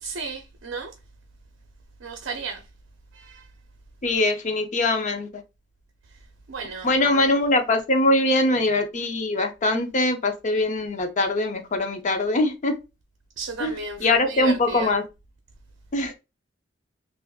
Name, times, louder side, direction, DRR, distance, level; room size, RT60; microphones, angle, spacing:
voice 1, 0.0-0.9 2.0-2.6 3.1-3.5 6.5-7.3 13.4-14.9, right 4 dB, 70° right, 0.6 m, -34 dB
voice 2, 4.0-5.3 6.8-12.7 13.6-13.7 14.0-15.0 15.9-16.2, left 2 dB, 40° left, 0.5 m, -22 dB
3.5 x 2.5 x 2.3 m
head